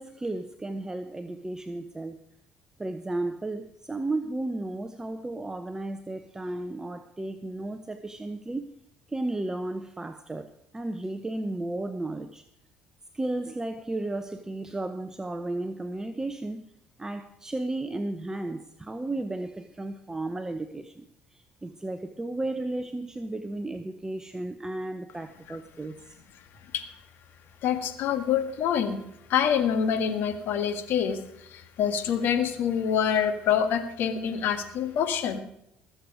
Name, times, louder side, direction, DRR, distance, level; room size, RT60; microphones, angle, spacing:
voice 1, 0.0-2.2 2.8-8.7 9.1-12.4 13.1-16.7 17.0-26.2, right 2 dB, 15° right, 9 dB, 0.9 m, -34 dB
voice 2, 27.6-29.0 29.3-35.4, left 8 dB, 65° left, 9 dB, 1.8 m, -26 dB
20.5 x 7.9 x 4.9 m, 0.78 s
supercardioid pair, 80°, 4 cm